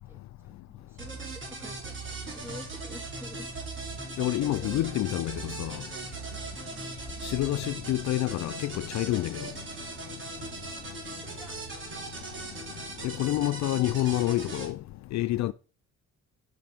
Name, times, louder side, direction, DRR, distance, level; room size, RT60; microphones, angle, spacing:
voice 1, 0.1-3.6 4.6-5.0 6.7-7.0 10.7-11.5, left 1 dB, 10° right, 2.1 m, -49 dB
sound 1, 1.0-14.7, right 3 dB, 40° right, 2.3 m, -39 dB
voice 2, 4.2-5.8 7.2-9.5 13.0-14.8 15.1-15.5, left 15 dB, 65° left, 0.4 m, -28 dB
6.2 x 5.6 x 4.4 m
cardioid pair, 90°, 30 cm